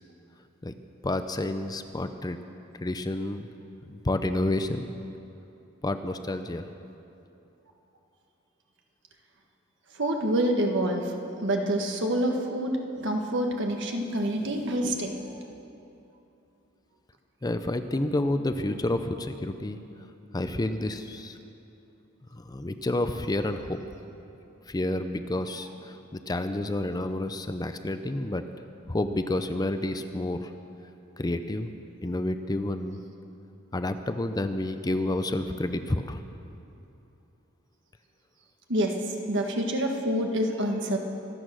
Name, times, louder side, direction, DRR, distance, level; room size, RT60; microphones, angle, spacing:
voice 1, 1.0-2.4 2.8-3.5 3.9-4.9 5.8-6.7 17.4-19.8 20.3-21.4 22.3-23.8 24.7-26.0 26.3-28.4 28.9-30.5 31.2-31.7 32.0-33.0 33.7-36.2, left 1 dB, 20° left, 9 dB, 0.5 m, -29 dB
voice 2, 9.9-11.1 11.4-15.4 38.7-41.0, right 1 dB, 60° right, 3 dB, 1.6 m, -27 dB
25.0 x 8.4 x 6.3 m, 2.8 s
head